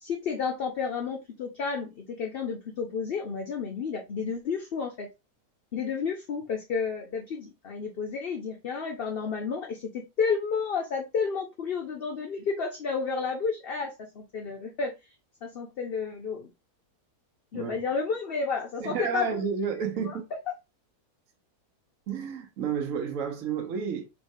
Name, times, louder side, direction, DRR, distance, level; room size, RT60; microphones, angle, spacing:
voice 1, 0.0-5.1 5.7-14.9 15.4-16.5 17.5-19.4 20.0-20.2, left 5 dB, 55° left, 0.7 m, -31 dB
voice 2, 18.8-20.2 22.1-24.1, right 6 dB, 60° right, 1.2 m, -31 dB
4.8 x 3.2 x 2.6 m
omnidirectional pair, 1.7 m